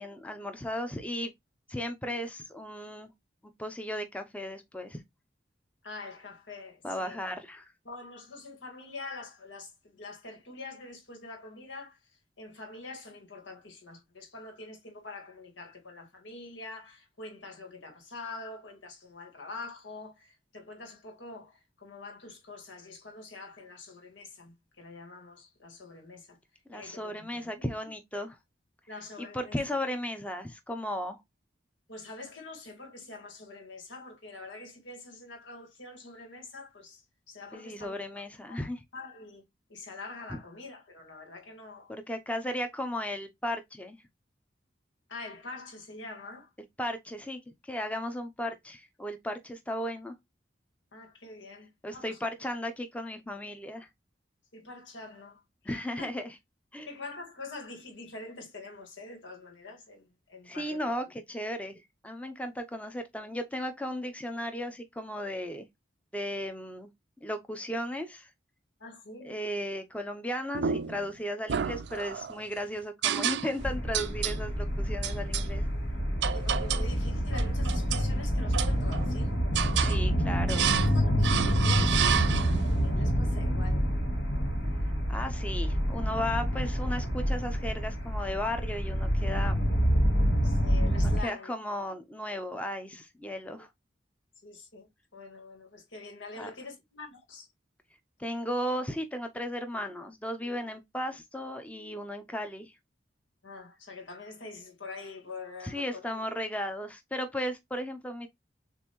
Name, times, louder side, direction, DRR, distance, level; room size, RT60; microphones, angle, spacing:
voice 1, 0.0-1.3 1.7-3.1 3.6-5.0 6.8-7.7 26.7-28.4 29.3-31.2 37.5-38.8 40.3-40.4 41.9-44.0 46.8-50.1 51.8-53.9 55.6-56.4 56.7-57.0 60.4-65.7 66.1-66.9 67.2-68.3 69.2-75.6 79.8-80.7 85.1-89.6 91.0-93.7 96.4-96.5 98.2-102.7 105.6-108.3, equal, 5° left, 0.5 m, -35 dB
voice 2, 5.8-7.2 7.8-12.0 12.4-26.4 26.7-27.7 28.9-29.6 31.9-37.0 37.3-38.2 38.9-39.4 39.7-41.9 45.1-46.5 50.9-52.2 54.5-56.1 56.9-60.8 68.8-69.4 76.3-79.3 80.5-82.4 82.7-83.9 90.4-91.5 94.4-97.5 103.4-106.2, left 3 dB, 85° left, 1.8 m, -45 dB
sound 1, 70.5-71.1 71.5-72.4 73.0-73.7 73.9-74.4 75.0-75.5 76.2-76.9 77.3-78.1 78.5-79.1 79.5-80.0 80.5-81.0 81.2-82.7, right 8 dB, 70° right, 0.4 m, -30 dB
sound 2, 73.6-91.2, equal, 65° left, 2.0 m, -27 dB
7.0 x 2.6 x 2.9 m
head